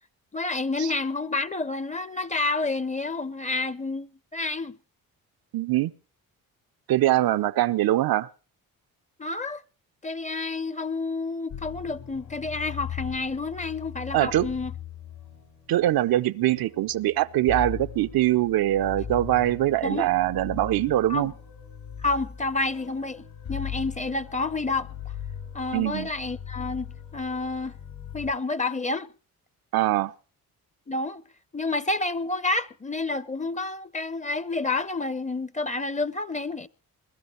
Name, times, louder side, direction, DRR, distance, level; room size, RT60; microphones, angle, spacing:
voice 1, 0.3-4.7 9.2-9.6 10.0-14.7 19.8-20.1 21.1-21.3 22.0-24.9 25.5-27.7 28.1-29.1 30.9-31.2 31.5-36.7, left 3 dB, 20° left, 0.7 m, -29 dB
voice 2, 5.5-5.9 6.9-8.3 14.1-14.5 15.7-21.3 25.7-26.1 29.7-30.1, right 14 dB, 80° right, 0.7 m, -23 dB
sound 1, 11.5-28.3, left 8 dB, 80° left, 5.2 m, -39 dB
21.5 x 12.5 x 4.3 m
cardioid pair, 85°, 35 cm